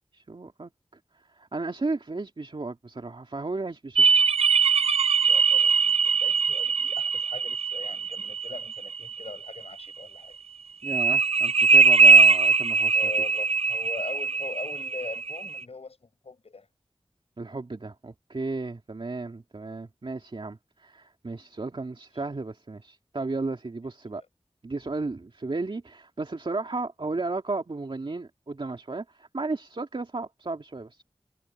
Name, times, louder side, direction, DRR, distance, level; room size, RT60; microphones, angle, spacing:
voice 1, 0.1-0.7 1.4-4.1 10.8-13.0 17.4-24.2 24.6-31.0, right 3 dB, 55° right, 2.6 m, -34 dB
sound 1, 4.0-9.5 10.8-15.6, right 5 dB, 85° right, 0.5 m, -21 dB
voice 2, 5.2-10.4 12.9-16.7 24.1-24.3, left 4 dB, 85° left, 7.8 m, -41 dB
wide cardioid pair, 60°, 10 cm